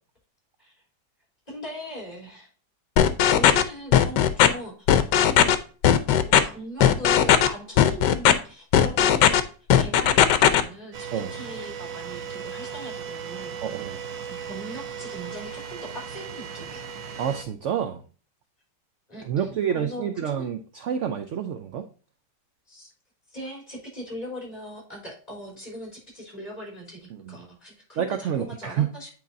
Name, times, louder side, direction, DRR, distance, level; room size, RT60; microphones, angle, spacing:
voice 1, 1.5-2.5 3.3-5.0 6.3-9.4 9.8-13.5 13.9-14.0 14.3-16.9 19.1-20.5 22.7-22.9 23.3-29.1, equal, 20° left, -2 dB, 3.7 m, -39 dB
sound 1, 3.0-3.6 3.9-4.5 4.9-5.5 5.8-6.4 6.8-7.5 7.8-8.3 8.7-9.4 9.7-10.6, left 10 dB, 75° left, 1.3 m, -17 dB
sound 2, 10.9-17.4, right 7 dB, 85° right, 1.7 m, -37 dB
voice 2, 13.6-14.0 17.2-18.0 19.2-21.9 27.1-27.4 28.0-28.9, right 8 dB, 70° right, 8 dB, 0.7 m, -28 dB
9.0 x 4.6 x 2.6 m, 0.39 s
omnidirectional pair, 1.9 m